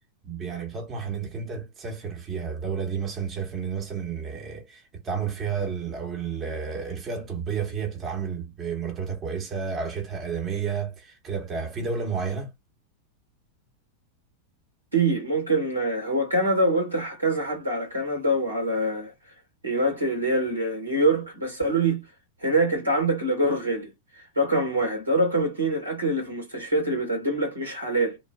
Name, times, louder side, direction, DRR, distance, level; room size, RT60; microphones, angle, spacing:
voice 1, 0.2-12.5, right 6 dB, 25° right, 1.1 m, -31 dB
voice 2, 14.9-19.1 19.6-22.0 22.4-23.9 24.3-28.2, right 1 dB, 80° right, 1.7 m, -24 dB
3.1 x 2.4 x 2.3 m
figure-of-eight pair, 90°, 0 cm